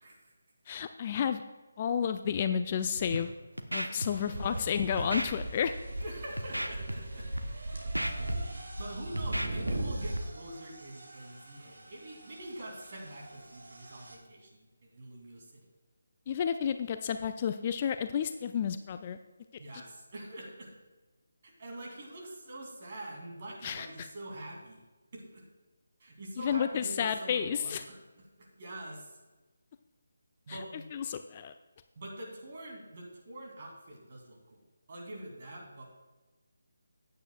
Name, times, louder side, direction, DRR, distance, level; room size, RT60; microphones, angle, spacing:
voice 1, 0.0-0.3 4.0-4.6 6.0-7.5 8.5-15.7 19.6-20.7 21.4-24.9 25.1-25.4 26.0-28.0 28.4-29.1 30.5-30.9 32.0-34.6 34.9-35.8, right 1 dB, 35° right, -1 dB, 2.6 m, -45 dB
voice 2, 0.7-1.4 1.8-3.3 3.7-5.7 16.3-19.2 23.6-24.1 26.4-27.8 30.5-30.6 30.9-31.5, left 8 dB, 25° left, 9 dB, 0.3 m, -31 dB
Scratching (performance technique), 3.0-3.2 3.6-4.1 4.4-4.6 5.0-5.3 5.8-6.0 6.4-6.9 7.2-7.4 7.7-8.8 9.2-9.7 10.0-10.2, equal, 85° right, 1.0 m, -34 dB
sound 1, 3.2-3.3 3.8-14.1, right 1 dB, 55° right, 2.2 m, -40 dB
14.5 x 9.4 x 2.3 m, 1.2 s
figure-of-eight pair, 155°, 0 cm